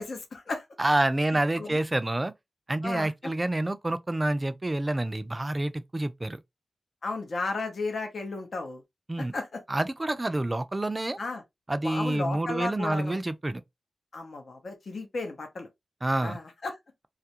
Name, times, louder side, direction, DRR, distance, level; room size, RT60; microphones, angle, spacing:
voice 1, 0.0-0.7 1.6-1.8 2.8-3.1 7.0-8.8 9.3-9.6 11.2-11.4 11.8-13.2 14.1-15.7 16.2-16.7, left 3 dB, 75° left, 0.6 m, -34 dB
voice 2, 0.8-2.3 2.7-6.4 9.1-9.3 9.7-11.2 11.7-13.6 16.0-16.4, right 1 dB, 30° right, 0.4 m, -28 dB
2.3 x 2.0 x 2.7 m
cardioid pair, 50°, 0 cm